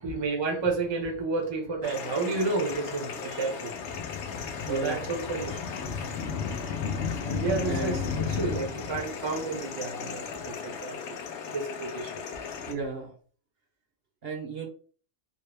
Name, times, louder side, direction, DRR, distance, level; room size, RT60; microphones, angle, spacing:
voice 1, 0.0-3.8 4.7-5.6 7.2-11.0 11.5-12.2, right 3 dB, 25° right, 0.7 m, -31 dB
sound 1, 1.8-12.7, left 6 dB, 70° left, 0.9 m, -34 dB
voice 2, 4.6-5.1 7.6-8.1 12.7-13.1 14.2-14.7, right 3 dB, 55° right, 0.8 m, -34 dB
3.6 x 2.2 x 3.2 m
omnidirectional pair, 1.3 m